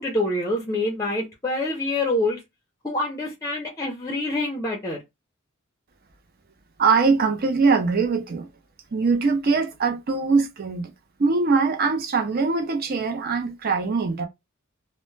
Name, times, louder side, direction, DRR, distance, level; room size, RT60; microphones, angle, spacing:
voice 1, 0.0-2.4 2.8-5.0, left 2 dB, 15° left, 0.5 m, -26 dB
voice 2, 6.8-8.5 8.9-10.9 11.2-14.3, right 4 dB, 45° right, 0.5 m, -22 dB
2.1 x 2.0 x 3.1 m
head